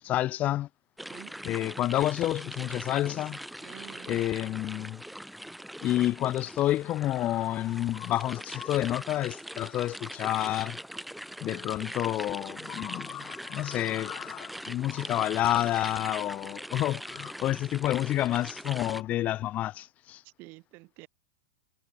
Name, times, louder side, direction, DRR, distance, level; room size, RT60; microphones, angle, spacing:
voice 1, 0.0-0.7 1.4-3.4 4.1-5.0 5.8-10.8 11.4-20.2, left 14 dB, 35° left, 0.7 m, -29 dB
sound 1, 1.0-19.0, equal, ahead, 4.0 m, -42 dB
voice 2, 1.1-1.4 3.6-4.3 20.2-21.1, right 25 dB, 45° right, 7.7 m, -49 dB
hypercardioid pair, 130°, 5 cm